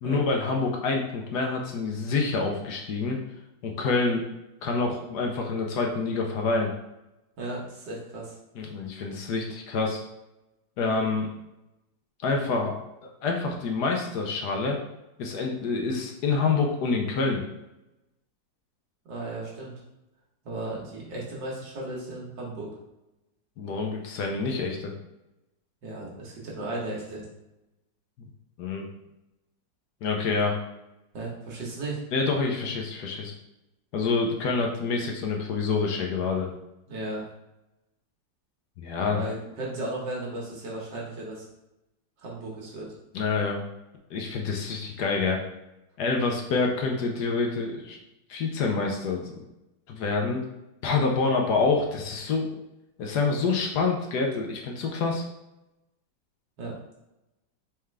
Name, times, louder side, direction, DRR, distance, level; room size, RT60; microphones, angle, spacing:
voice 1, 0.0-3.2 3.6-4.2 4.6-6.7 8.6-10.0 10.8-11.3 12.2-12.7 13.2-14.8 15.2-17.5 23.6-24.9 28.2-28.3 28.6-28.9 30.0-30.6 32.1-33.3 33.9-36.5 38.8-39.2 43.1-43.6 44.1-45.4 46.0-48.0 48.3-49.3 49.9-50.4 50.8-52.5 53.0-55.2, left 4 dB, 70° left, 1 dB, 1.2 m, -27 dB
voice 2, 7.4-8.4 19.1-19.7 20.4-22.8 25.8-27.3 31.1-32.0 36.9-37.3 39.1-41.4 42.2-42.9 56.6-56.7, right 2 dB, 75° right, -3 dB, 1.9 m, -35 dB
4.3 x 3.6 x 3.3 m, 0.93 s
omnidirectional pair, 2.0 m